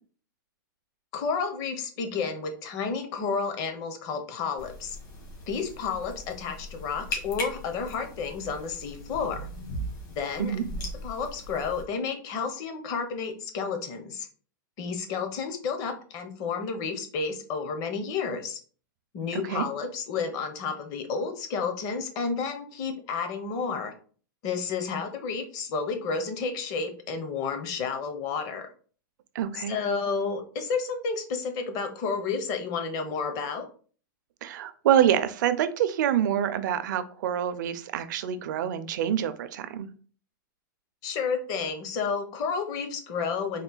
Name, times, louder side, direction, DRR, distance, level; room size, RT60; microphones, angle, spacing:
voice 1, 1.1-5.0 5.5-9.5 10.2-10.6 11.0-14.3 14.8-18.6 19.1-23.9 24.4-28.7 29.5-33.7 41.0-43.6, left 5 dB, 35° left, 6 dB, 0.7 m, -31 dB
sound 1, 4.6-11.8, left 1 dB, 60° left, 1.7 m, -39 dB
voice 2, 19.3-19.7 29.3-29.8 34.4-39.9, right 10 dB, 65° right, 11 dB, 0.5 m, -26 dB
3.8 x 2.2 x 3.9 m, 0.42 s
hypercardioid pair, 145°, 11 cm